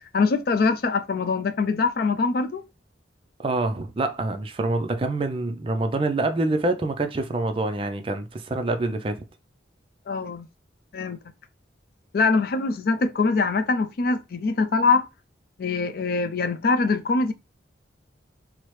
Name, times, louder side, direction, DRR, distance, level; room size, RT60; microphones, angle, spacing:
voice 1, 0.1-2.6 10.1-10.5 10.9-11.2 12.1-15.1 15.6-17.3, left 4 dB, 50° left, 0.4 m, -23 dB
voice 2, 3.4-9.2, right 2 dB, 30° right, 0.4 m, -26 dB
4.6 x 2.0 x 3.0 m
head